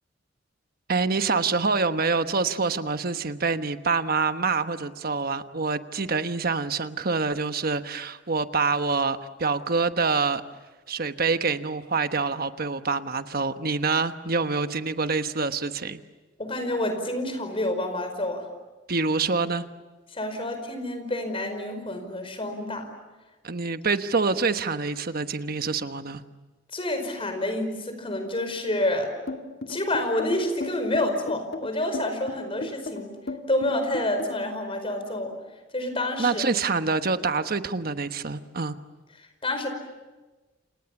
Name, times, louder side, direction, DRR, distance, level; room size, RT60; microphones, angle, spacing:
voice 1, 0.9-10.4 10.9-16.0 18.9-19.7 23.4-26.2 36.2-38.8, right 4 dB, 55° right, 9 dB, 1.2 m, -26 dB
voice 2, 16.4-18.4 20.1-22.9 26.7-29.1 29.7-33.1 33.5-35.3 35.7-36.4 39.4-39.7, left 1 dB, 30° left, 7 dB, 5.0 m, -28 dB
sound 1, 29.3-34.5, left 2 dB, 60° left, 2.1 m, -35 dB
29.0 x 28.5 x 7.2 m, 1.2 s
head